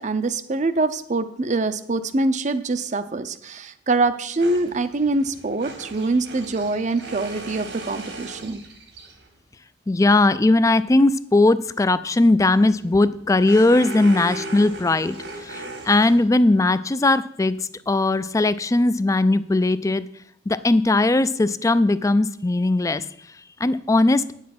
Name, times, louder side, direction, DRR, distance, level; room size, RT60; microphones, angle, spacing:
voice 1, 0.0-8.6, right 2 dB, 40° right, 12 dB, 0.6 m, -24 dB
sound 1, 4.4-9.3 12.4-16.6, right 2 dB, 75° right, 2.0 m, -38 dB
voice 2, 9.9-17.6 17.9-20.1 20.5-23.0 23.6-24.2, left 2 dB, 15° left, 15 dB, 0.3 m, -19 dB
9.5 x 7.4 x 5.9 m, 0.70 s
head